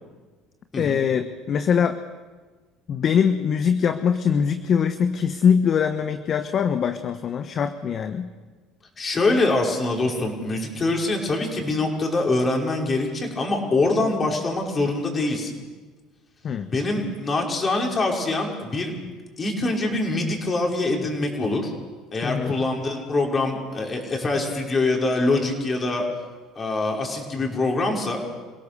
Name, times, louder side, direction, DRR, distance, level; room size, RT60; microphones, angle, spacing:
voice 1, 0.8-2.0 2.9-8.3 16.4-16.7 22.2-22.5, left 7 dB, 50° left, 10 dB, 1.1 m, -22 dB
voice 2, 9.0-15.6 16.7-18.9 19.4-21.7 22.1-26.0 26.6-28.2, left 2 dB, 30° left, 1 dB, 5.5 m, -24 dB
27.0 x 17.5 x 7.0 m, 1.4 s
hypercardioid pair, 75°, 0 cm